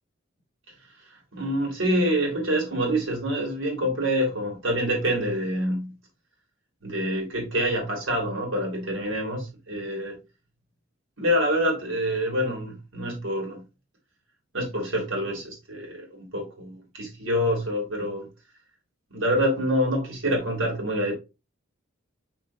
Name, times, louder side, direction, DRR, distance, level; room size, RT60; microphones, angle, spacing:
voice 1, 1.3-5.9 6.8-10.2 11.2-13.6 14.5-18.3 19.1-21.1, equal, 75° right, 3.1 m, -26 dB
6.1 x 5.8 x 2.7 m
head